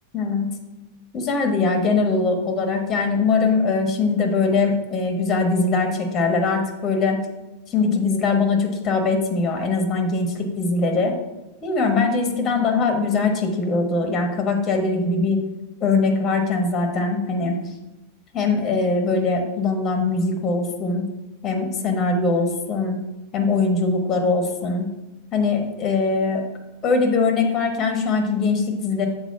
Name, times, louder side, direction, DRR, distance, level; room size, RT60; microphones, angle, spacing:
voice 1, 0.1-0.5 1.1-7.2 7.7-11.1 11.6-15.4 15.8-17.6 18.3-21.0 21.4-23.0 23.3-24.9 25.3-26.4 26.8-29.1, left 3 dB, 30° left, 4 dB, 1.3 m, -21 dB
7.4 x 4.5 x 5.8 m, 1.0 s
figure-of-eight pair, 90°, 0 cm